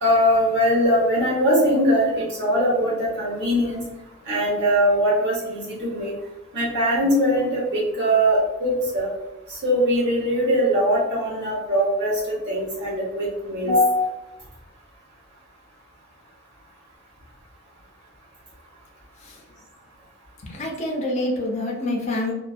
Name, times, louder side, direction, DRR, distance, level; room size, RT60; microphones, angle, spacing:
voice 1, 0.0-3.8 4.3-6.1 6.5-9.1 9.6-14.1, equal, 60° right, -5 dB, 1.0 m, -21 dB
voice 2, 20.4-22.3, left 1 dB, 35° left, -1 dB, 0.5 m, -26 dB
2.4 x 2.1 x 2.3 m, 0.97 s
head